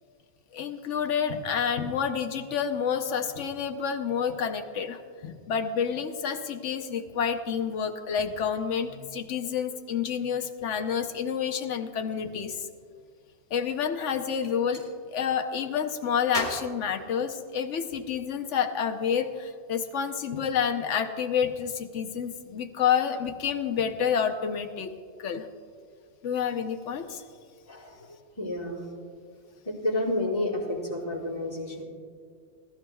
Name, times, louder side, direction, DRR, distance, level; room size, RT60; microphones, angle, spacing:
voice 1, 0.5-12.6 13.5-24.9 25.2-25.5 26.2-27.2, left 7 dB, 80° left, 6 dB, 1.1 m, -29 dB
Gunshot gunfire, 14.4-14.9 16.3-17.8, equal, 60° right, 3.1 m, -38 dB
voice 2, 27.7-28.9 29.6-31.8, left 1 dB, 30° left, -5 dB, 3.1 m, -30 dB
19.5 x 13.5 x 2.3 m, 2.1 s
omnidirectional pair, 1.2 m